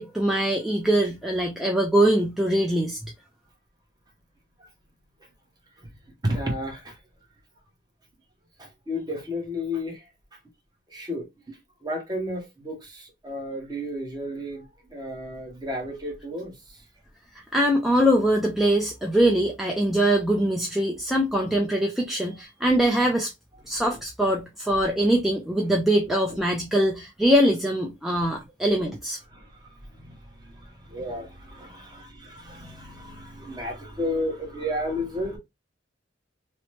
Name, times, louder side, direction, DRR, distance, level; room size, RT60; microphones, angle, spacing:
voice 1, 0.0-3.0 17.5-23.3 23.7-29.2, right 1 dB, ahead, 0.3 m, -22 dB
voice 2, 6.2-7.0 8.6-10.1 10.9-16.8 23.6-24.0 26.3-26.4 28.1-28.7 29.3-35.4, left 1 dB, 20° right, 0.8 m, -33 dB
2.9 x 2.0 x 3.1 m
head